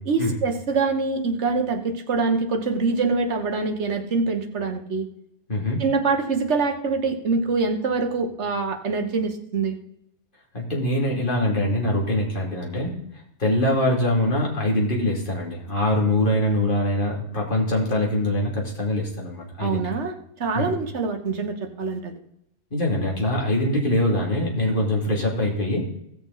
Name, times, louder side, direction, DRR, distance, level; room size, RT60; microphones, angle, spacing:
voice 1, 0.1-5.0 5.8-9.7 19.6-20.1 20.4-22.2, right 4 dB, 50° right, 5 dB, 1.4 m, -24 dB
voice 2, 5.5-5.8 10.5-13.0 13.4-19.8 20.5-20.7 22.7-25.9, left 1 dB, 35° left, -1 dB, 2.8 m, -23 dB
16.5 x 6.8 x 4.0 m, 0.76 s
omnidirectional pair, 1.6 m